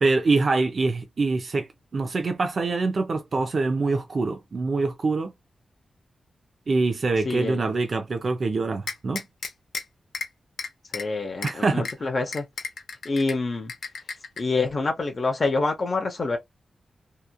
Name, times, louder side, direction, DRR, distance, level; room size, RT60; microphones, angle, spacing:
voice 1, 0.0-5.3 6.7-9.2 11.4-11.9, right 3 dB, 40° right, 0.4 m, -24 dB
voice 2, 7.2-7.6 10.9-12.5 13.0-13.7 14.4-16.4, left 3 dB, 35° left, 0.6 m, -26 dB
sound 1, 8.9-9.8 10.1-10.3 10.6-11.0 11.4-11.5 11.9-12.0 12.3-13.3 13.7-14.4, left 5 dB, 90° left, 0.6 m, -32 dB
2.8 x 2.4 x 2.2 m
wide cardioid pair, 165°, 0 cm